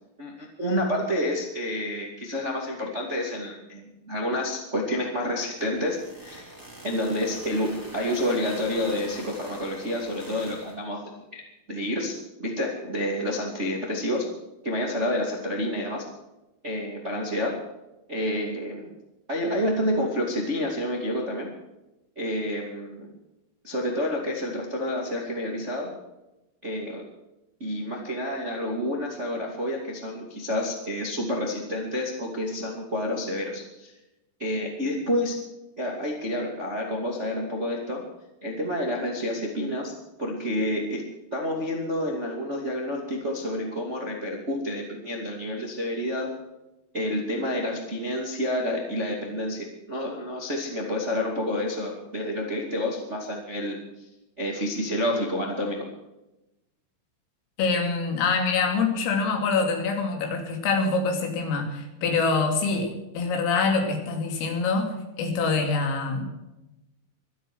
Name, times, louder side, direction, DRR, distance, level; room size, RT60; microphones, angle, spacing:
voice 1, 0.2-6.5 6.8-11.4 11.7-12.1 12.4-14.3 14.6-16.0 16.6-17.5 18.1-18.9 19.3-21.5 22.1-23.1 23.6-25.9 26.6-27.0 27.6-33.9 34.4-35.4 35.8-38.0 38.4-39.9 40.2-41.0 41.3-46.3 46.9-53.8 54.4-55.8, left 1 dB, 25° right, 0 dB, 1.4 m, -29 dB
sound 1, 5.6-10.7, right 1 dB, 5° right, 2.6 m, -44 dB
voice 2, 57.6-62.9 63.1-66.2, left 4 dB, 85° left, 4 dB, 5.4 m, -25 dB
24.5 x 8.7 x 6.2 m, 0.96 s
omnidirectional pair, 5.8 m